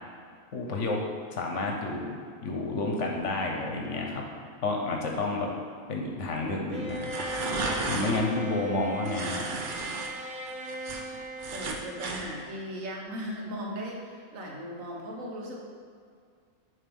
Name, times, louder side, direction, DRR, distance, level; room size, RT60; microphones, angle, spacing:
voice 1, 0.5-1.0 1.3-4.3 4.6-5.5 5.9-7.1 7.9-9.6, left 2 dB, 60° left, 1 dB, 1.0 m, -30 dB
Bowed string instrument, 6.7-12.8, right 1 dB, 90° right, 1.2 m, -39 dB
sound 1, 6.9-8.2 9.1-10.1 10.5-12.2, right 3 dB, 55° right, 0.5 m, -34 dB
voice 2, 11.5-15.6, equal, 70° right, -2 dB, 1.4 m, -37 dB
7.3 x 3.0 x 5.3 m, 2.2 s
omnidirectional pair, 1.5 m